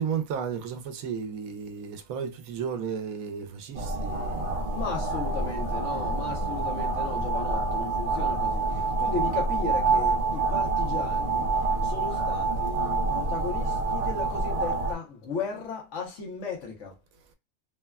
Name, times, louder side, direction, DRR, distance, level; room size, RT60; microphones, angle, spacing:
voice 1, 0.0-4.6, right 7 dB, 80° right, 1.0 m, -33 dB
sound 1, 3.7-14.9, right 3 dB, 50° right, 0.4 m, -27 dB
voice 2, 4.7-8.6 9.0-11.4 11.9-16.9, left 5 dB, 60° left, 1.2 m, -35 dB
3.3 x 2.1 x 2.2 m
omnidirectional pair, 1.5 m